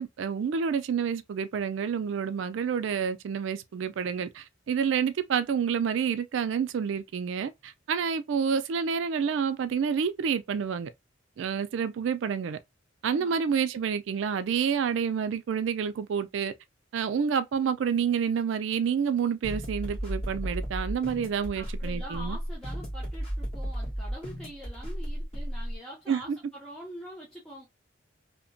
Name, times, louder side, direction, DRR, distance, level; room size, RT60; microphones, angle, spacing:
voice 1, 0.0-10.9 11.4-12.6 13.0-16.5 16.9-22.4 26.1-26.4, right 7 dB, 70° right, 0.3 m, -28 dB
sound 1, 19.4-25.8, equal, 30° left, 1.3 m, -34 dB
voice 2, 21.5-27.7, equal, 5° left, 0.7 m, -44 dB
2.8 x 2.2 x 2.5 m
head